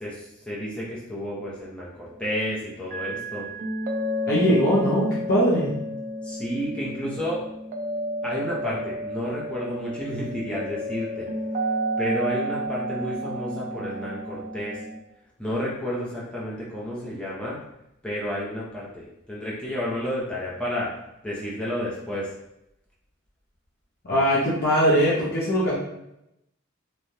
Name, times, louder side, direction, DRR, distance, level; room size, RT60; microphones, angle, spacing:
voice 1, 0.0-3.5 6.2-7.4 8.2-11.3 12.0-14.8 15.4-17.6 18.0-20.9 21.2-22.3, equal, 5° left, -7 dB, 0.6 m, -31 dB
sound 1, 2.9-15.0, equal, 40° right, 0.3 m, -31 dB
voice 2, 4.3-5.7 24.0-25.7, equal, 50° left, -7 dB, 0.7 m, -21 dB
3.2 x 2.3 x 2.6 m, 0.83 s
head